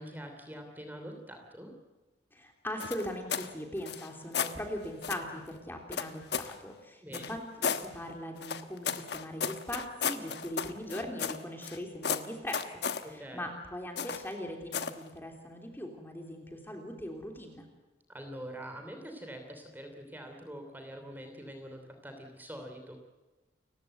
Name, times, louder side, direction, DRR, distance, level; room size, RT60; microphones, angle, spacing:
voice 1, 0.0-1.7 7.0-7.4 13.0-13.5 18.1-23.0, equal, 10° right, 5 dB, 3.1 m, -45 dB
voice 2, 2.3-12.6 13.1-17.6, equal, 10° left, 3 dB, 3.3 m, -40 dB
sound 1, 2.8-3.5 3.8-4.6 5.0-5.3 5.9-6.6 7.1-7.9 8.4-11.8 12.0-13.0 14.0-14.3 14.7-15.0, left 6 dB, 65° left, 1.3 m, -34 dB
29.5 x 15.5 x 8.0 m, 1.1 s
head